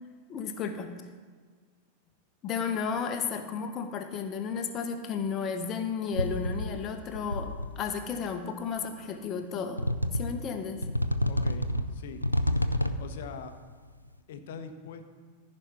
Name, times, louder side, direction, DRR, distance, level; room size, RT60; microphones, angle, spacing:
voice 1, 0.3-0.9 2.4-7.5 7.8-9.8 10.1-10.8, left 6 dB, 30° left, 6 dB, 1.1 m, -33 dB
sound 1, 6.1-6.9 7.2-7.9 8.8-8.9 9.8-10.5 10.8-13.2, left 1 dB, 90° left, 0.4 m, -29 dB
voice 2, 11.3-12.2 13.0-13.6 14.3-15.0, left 6 dB, 55° left, 8 dB, 0.9 m, -42 dB
14.5 x 5.4 x 4.4 m, 1.5 s
figure-of-eight pair, 90°, 0 cm